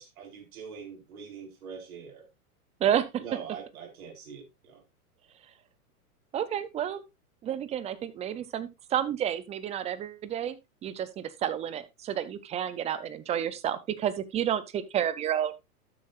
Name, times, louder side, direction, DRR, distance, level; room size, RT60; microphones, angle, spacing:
voice 1, 0.0-2.3 3.2-4.8, right 6 dB, 65° right, 4.6 m, -43 dB
voice 2, 2.8-3.2 6.3-7.0 7.4-10.6 10.8-15.5, right 10 dB, 15° right, 0.5 m, -30 dB
12.0 x 8.0 x 2.5 m
hypercardioid pair, 125°, 45 cm